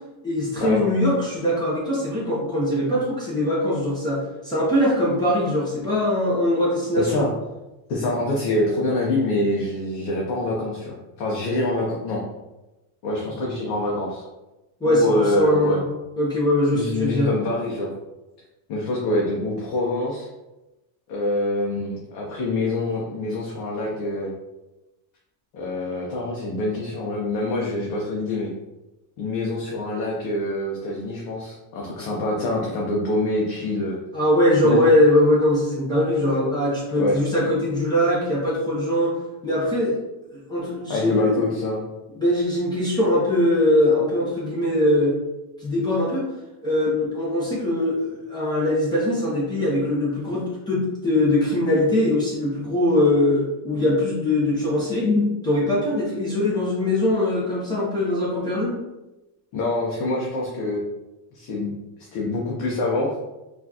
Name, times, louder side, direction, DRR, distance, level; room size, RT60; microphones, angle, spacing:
voice 1, 0.2-7.2 14.8-15.8 16.2-17.3 34.1-39.1 39.4-39.9 40.5-41.4 42.1-45.2 45.6-46.3 46.6-58.7, left 1 dB, 10° left, -8 dB, 0.7 m, -21 dB
voice 2, 7.0-7.3 7.9-12.2 13.0-14.2 14.8-15.8 16.7-17.9 18.7-20.3 21.1-24.3 25.5-28.5 29.2-34.0 34.6-34.8 36.9-37.2 40.9-41.8 59.5-60.8 61.3-61.7 62.1-63.1, left 2 dB, 50° left, -4 dB, 0.7 m, -25 dB
4.2 x 2.4 x 2.8 m, 1.0 s
cardioid pair, 170°, 49 cm